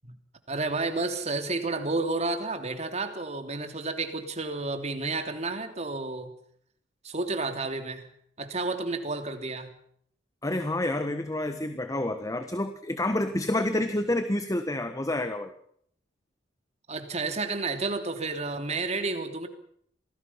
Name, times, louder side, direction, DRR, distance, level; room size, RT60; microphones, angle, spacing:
voice 1, 0.5-6.3 7.0-8.1 8.4-9.7 16.9-19.5, right 3 dB, 40° right, 7 dB, 3.1 m, -31 dB
voice 2, 10.4-15.5, left 1 dB, 20° left, 9 dB, 1.4 m, -28 dB
27.5 x 19.0 x 5.8 m, 0.64 s
head